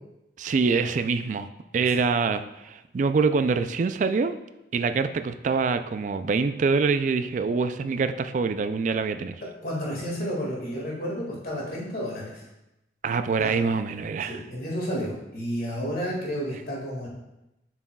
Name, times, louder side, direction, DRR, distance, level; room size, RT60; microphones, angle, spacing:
voice 1, 0.4-1.5 1.7-4.4 4.7-9.4 13.0-14.4, right 4 dB, 45° right, 10 dB, 0.3 m, -25 dB
voice 2, 9.6-12.4 13.4-13.5 14.3-17.1, equal, 55° left, -3 dB, 2.0 m, -31 dB
7.5 x 6.1 x 2.3 m, 0.93 s
head